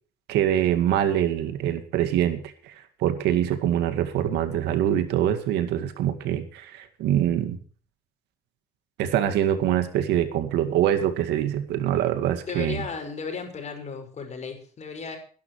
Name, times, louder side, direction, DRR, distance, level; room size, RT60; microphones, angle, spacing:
voice 1, 0.3-7.6 9.0-12.8, right 11 dB, 85° right, 9 dB, 2.1 m, -24 dB
voice 2, 12.5-15.2, left 5 dB, 40° left, 5 dB, 5.8 m, -34 dB
23.0 x 11.5 x 3.2 m, 0.43 s
cardioid pair, 110°, 17 cm